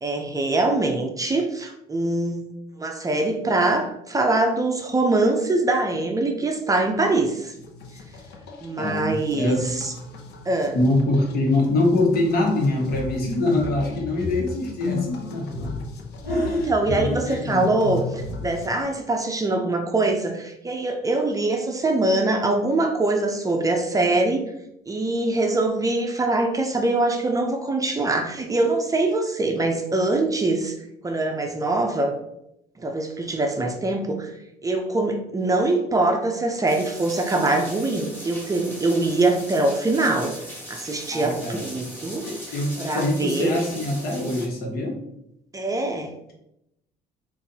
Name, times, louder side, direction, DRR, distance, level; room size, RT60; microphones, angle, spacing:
voice 1, 0.0-2.4 2.8-7.5 8.6-9.5 10.5-10.8 16.2-24.4 24.9-30.7 31.0-32.1 32.8-34.3 34.6-40.4 40.7-42.3 42.8-43.5 45.5-46.1, right 2 dB, 20° right, 3 dB, 0.5 m, -23 dB
sound 1, 7.6-18.8, left 3 dB, 80° left, 0.8 m, -35 dB
voice 2, 8.8-9.8 10.7-15.8 16.3-17.7 41.1-41.6 42.2-45.0, left 2 dB, 65° left, 0 dB, 1.3 m, -24 dB
sound 2, 36.7-44.5, equal, 15° left, 1.6 m, -39 dB
5.7 x 2.6 x 2.7 m, 0.81 s
cardioid pair, 110°, 17 cm